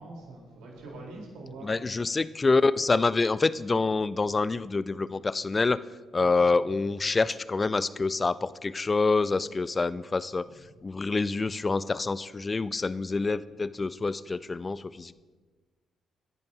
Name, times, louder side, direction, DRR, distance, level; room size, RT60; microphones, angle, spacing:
voice 1, 0.0-1.7 6.2-6.4, right 2 dB, 70° right, -2 dB, 3.9 m, -44 dB
voice 2, 1.6-5.8 6.1-10.5 10.8-15.1, left 3 dB, 30° left, 17 dB, 0.5 m, -26 dB
25.5 x 10.5 x 2.8 m, 1.4 s
hypercardioid pair, 45°, 0 cm